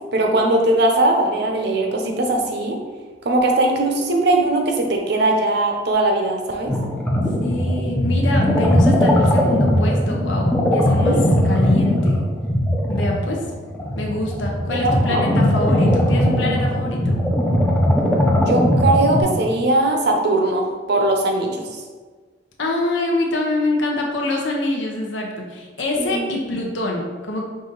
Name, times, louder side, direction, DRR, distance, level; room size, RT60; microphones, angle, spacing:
voice 1, 0.1-2.8 3.2-6.7 11.0-11.2 14.7-15.3 18.4-21.6 26.0-26.3, right 2 dB, 60° right, 2 dB, 0.7 m, -20 dB
sound 1, 6.7-19.2, equal, 5° left, 0.5 m, -19 dB
voice 2, 7.4-11.2 11.4-12.2 12.9-13.4 14.0-17.2 22.6-27.5, left 2 dB, 80° left, 0 dB, 0.8 m, -25 dB
4.9 x 2.7 x 3.9 m, 1.4 s
head